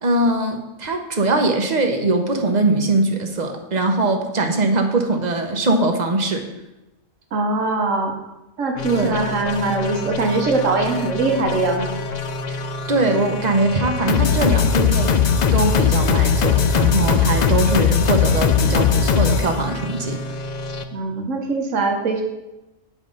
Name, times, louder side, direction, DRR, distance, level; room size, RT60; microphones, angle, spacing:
voice 1, 0.0-6.5 8.9-9.2 12.5-12.6 12.9-20.2, right 2 dB, 40° right, 4 dB, 0.9 m, -21 dB
voice 2, 7.3-8.2 8.6-11.9 20.9-22.2, right 3 dB, 75° right, 3 dB, 1.5 m, -22 dB
sound 1, 8.8-20.8, left 6 dB, 60° left, 0.4 m, -21 dB
8.9 x 4.8 x 5.4 m, 0.98 s
omnidirectional pair, 1.3 m